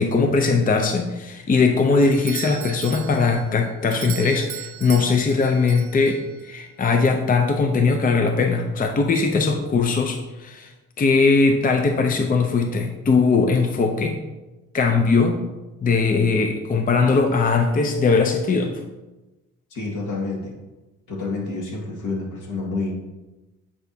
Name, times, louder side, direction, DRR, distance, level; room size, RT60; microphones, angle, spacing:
voice 1, 0.0-10.7 11.0-14.2 14.7-15.4 15.8-18.7, left 4 dB, 30° left, 4 dB, 0.6 m, -20 dB
Doorbell, 2.0-6.5, right 12 dB, 75° right, 0.6 m, -37 dB
voice 2, 19.7-20.5 21.1-22.9, left 3 dB, 75° left, -3 dB, 1.9 m, -28 dB
8.6 x 4.7 x 2.7 m, 1.1 s
cardioid pair, 90°, 30 cm